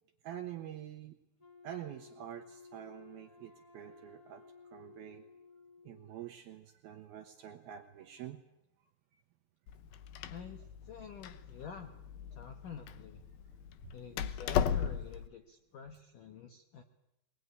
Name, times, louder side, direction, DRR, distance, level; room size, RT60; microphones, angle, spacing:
voice 1, 0.2-1.1 1.6-4.4 4.7-5.2 5.8-8.4 10.2-10.3, right 11 dB, 75° right, 5 dB, 2.3 m, -46 dB
Wind instrument woodwind instrument, 1.4-6.4, left 4 dB, 35° left, 0.5 m, -57 dB
Door, 9.7-15.3, left 8 dB, 90° left, 2.0 m, -37 dB
voice 2, 10.3-11.9 12.3-13.2 13.9-16.8, left 7 dB, 75° left, 6 dB, 1.9 m, -48 dB
22.0 x 21.0 x 9.6 m, 0.87 s
omnidirectional pair, 5.6 m